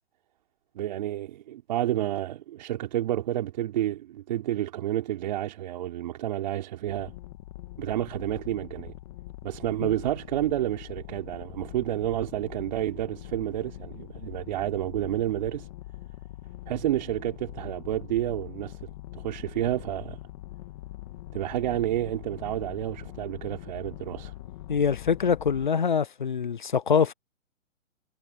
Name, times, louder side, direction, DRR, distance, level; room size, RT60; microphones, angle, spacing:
voice 1, 0.7-7.1 7.8-8.9 9.4-15.7 16.7-20.2 21.3-24.3, right 13 dB, 35° right, 3.9 m, -30 dB
sound 1, 6.9-25.7, left 15 dB, 25° left, 2.0 m, -43 dB
voice 2, 24.7-27.1, left 6 dB, 40° left, 0.5 m, -24 dB
hypercardioid pair, 170°, 41 cm